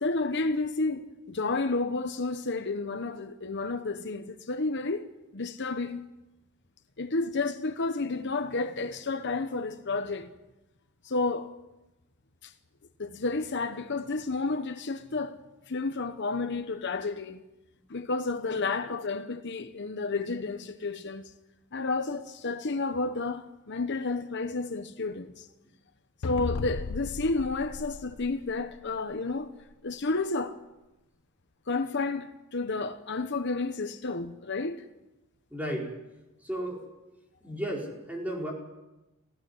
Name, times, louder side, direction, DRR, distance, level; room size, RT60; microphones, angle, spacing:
voice 1, 0.0-5.1 5.3-6.0 7.0-10.3 11.0-11.5 12.4-12.5 13.0-15.4 15.7-17.4 17.9-21.3 21.7-25.5 26.2-29.5 29.8-30.6 31.7-34.8, left 3 dB, 55° left, 1.0 m, -31 dB
sound 1, 26.2-28.9, left 4 dB, 90° left, 0.6 m, -36 dB
voice 2, 35.5-35.9 36.4-36.9 37.4-38.5, equal, 10° right, 4.7 m, -33 dB
19.0 x 15.5 x 9.7 m
head